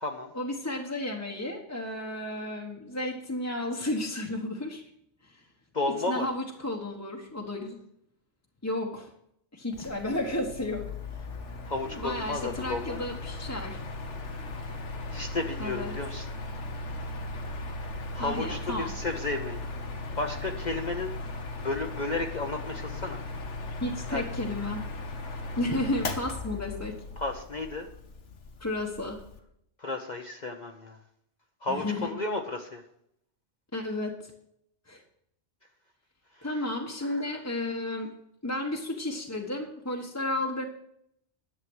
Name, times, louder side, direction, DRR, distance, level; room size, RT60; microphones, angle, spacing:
voice 1, 0.3-4.8 5.2-5.4 6.1-7.8 8.6-9.1 9.5-10.8 11.8-13.8 15.6-15.9 18.2-18.9 23.8-24.8 25.6-26.9 28.6-29.2 31.7-32.1 33.7-34.3 34.9-35.0 36.4-38.1 38.4-40.7, left 1 dB, 15° left, -1 dB, 1.1 m, -32 dB
voice 2, 5.7-6.3 11.7-13.1 15.1-16.3 18.1-19.6 20.2-21.1 21.6-23.2 24.1-24.2 25.7-25.8 27.2-27.9 29.8-31.0 31.6-32.8 37.0-37.2, left 2 dB, 40° left, 3 dB, 0.9 m, -32 dB
Mechanical fan, 9.7-29.4, left 2 dB, 80° left, 1.5 m, -38 dB
11.0 x 7.5 x 6.2 m, 0.74 s
omnidirectional pair, 1.2 m